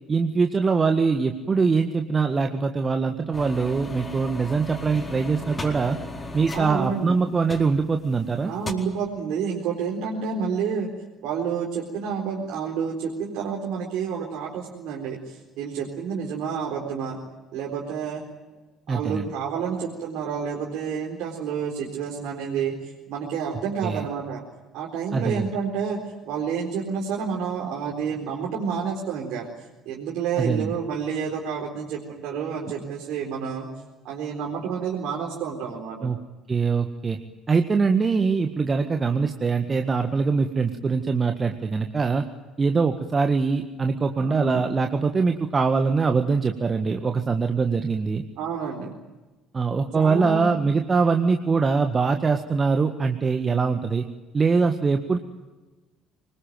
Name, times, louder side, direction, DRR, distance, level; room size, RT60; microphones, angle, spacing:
voice 1, 0.1-6.0 6.3-8.5 18.9-19.3 23.8-24.0 25.1-25.5 30.4-30.8 36.0-36.2 36.5-37.2 37.5-42.3 42.6-48.2 49.5-54.0 54.3-55.2, right 4 dB, 30° right, 5 dB, 1.7 m, -23 dB
sound 1, 3.3-8.1 8.4-8.7, left 2 dB, 25° left, 4.3 m, -36 dB
voice 2, 6.5-7.2 8.5-10.9 11.2-17.2 17.5-18.2 18.9-24.4 24.7-29.5 29.9-33.7 34.0-36.1 44.2-44.6 48.4-48.9 49.9-50.5, right 6 dB, 55° right, -2 dB, 4.1 m, -29 dB
25.5 x 21.0 x 9.3 m, 1.2 s
figure-of-eight pair, 55°, 0 cm